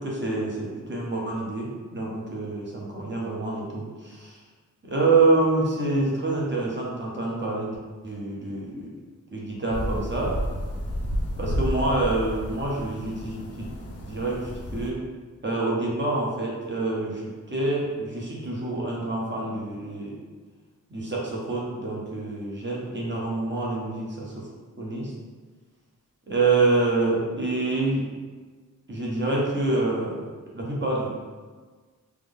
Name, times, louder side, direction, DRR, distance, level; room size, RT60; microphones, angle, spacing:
voice 1, 0.0-4.4 4.8-7.8 8.0-8.9 9.3-10.4 11.4-13.7 14.0-15.0 15.4-20.2 20.9-24.5 24.8-25.1 26.3-28.1 28.9-31.1, right 2 dB, 35° right, -4 dB, 0.9 m, -27 dB
sound 1, 9.7-14.9, equal, 45° left, 0.6 m, -31 dB
3.4 x 2.0 x 3.6 m, 1.4 s
wide cardioid pair, 70°, 34 cm